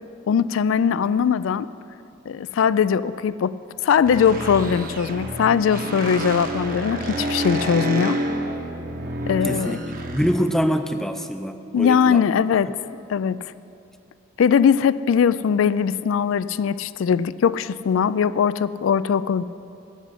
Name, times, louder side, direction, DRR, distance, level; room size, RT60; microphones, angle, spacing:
voice 1, 0.3-1.7 2.3-3.5 3.8-8.2 9.3-9.8 11.7-12.7 13.1-13.4 14.4-19.4, left 7 dB, 80° left, 17 dB, 0.3 m, -20 dB
sound 1, 4.0-10.3, right 1 dB, 45° right, 1.0 m, -29 dB
voice 2, 9.4-9.8 10.1-12.2, equal, ahead, 8 dB, 0.5 m, -24 dB
14.0 x 6.2 x 9.1 m, 2.7 s
head